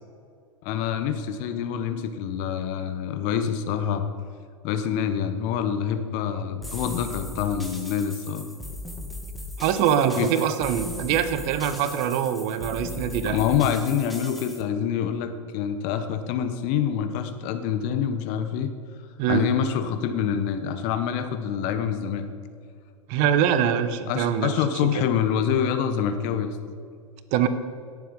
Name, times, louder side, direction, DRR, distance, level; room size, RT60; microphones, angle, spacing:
voice 1, 0.6-4.0 4.6-8.5 10.2-10.3 13.3-18.7 19.3-22.3 24.1-26.6, left 8 dB, 45° left, 9 dB, 1.2 m, -26 dB
sound 1, 6.6-14.6, left 1 dB, ahead, 1.7 m, -38 dB
voice 2, 9.6-13.4 19.2-19.5 23.1-24.6 25.0-25.1 27.3-27.5, right 9 dB, 45° right, 11 dB, 1.0 m, -23 dB
17.5 x 7.4 x 5.4 m, 2.3 s
hypercardioid pair, 100°, 17 cm